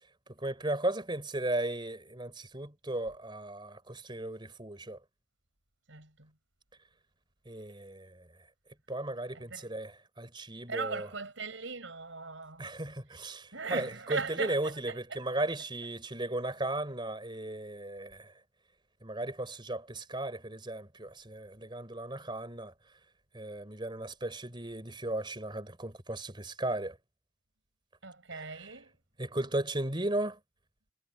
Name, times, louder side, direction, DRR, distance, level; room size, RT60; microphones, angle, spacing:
voice 1, 0.4-5.0 7.5-8.3 8.9-11.1 12.6-18.3 19.0-22.7 23.3-27.0 28.3-28.5 29.2-30.4, right 1 dB, 25° right, 4.0 m, -36 dB
voice 2, 5.9-6.3 9.3-9.7 10.7-12.7 13.5-15.2 28.0-28.9, right 4 dB, 80° right, 4.9 m, -39 dB
head